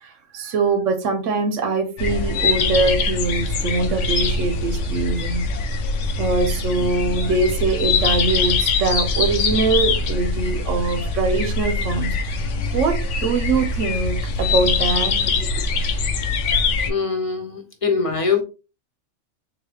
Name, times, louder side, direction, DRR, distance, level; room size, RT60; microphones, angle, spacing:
voice 1, 0.0-5.4 6.2-12.3 12.7-15.5, right 3 dB, 90° right, 1.0 m, -23 dB
sound 1, 2.0-16.9, left 4 dB, 75° left, 1.0 m, -23 dB
voice 2, 16.9-18.4, left 5 dB, 30° left, 0.8 m, -22 dB
3.9 x 2.7 x 3.3 m
omnidirectional pair, 1.3 m